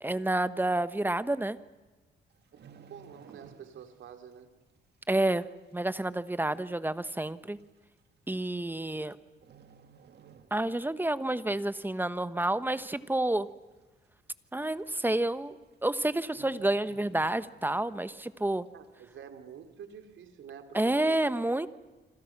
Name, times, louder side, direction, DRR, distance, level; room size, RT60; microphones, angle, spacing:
voice 1, 0.0-1.6 5.1-7.6 8.3-9.2 10.5-13.5 14.5-18.7 20.7-21.7, right 1 dB, 10° right, 13 dB, 1.2 m, -29 dB
sound 1, 2.3-4.1 4.3-4.6 5.2-5.3 6.1-6.2 6.5-6.6 7.4-7.6 8.7-9.1 9.4-11.0 11.3-11.5 12.0-12.6 12.9-13.0 13.2-13.3 13.7-13.8 14.8-14.9 15.2-15.5 15.7-15.9 16.2-17.9 18.3-18.4, right 6 dB, 55° right, 1.9 m, -55 dB
voice 2, 2.8-4.5 18.7-21.4, right 7 dB, 75° right, 6 dB, 3.3 m, -48 dB
28.0 x 26.0 x 6.1 m, 1.2 s
cardioid pair, 90°, 20 cm